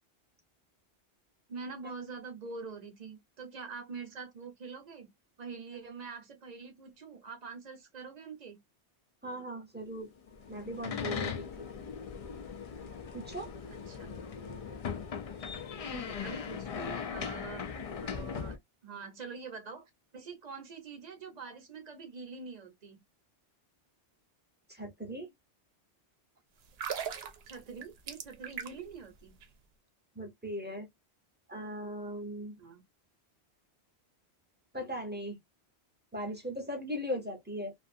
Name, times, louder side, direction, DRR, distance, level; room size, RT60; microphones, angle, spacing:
voice 1, 1.5-5.1 5.4-8.6 13.9-14.1 15.9-17.7 18.0-23.0 27.5-29.4 32.6-32.8, right 5 dB, 45° right, 0.8 m, -45 dB
voice 2, 9.2-10.1 10.5-11.7 13.1-13.5 24.7-25.3 30.2-30.9 31.5-32.6 34.7-35.4 36.1-37.7, equal, 10° right, 0.6 m, -38 dB
sound 1, 10.3-18.6, left 6 dB, 60° left, 0.4 m, -39 dB
sound 2, 26.6-29.0 29.3-29.5, right 8 dB, 75° right, 0.8 m, -39 dB
2.5 x 2.4 x 2.5 m
omnidirectional pair, 1.1 m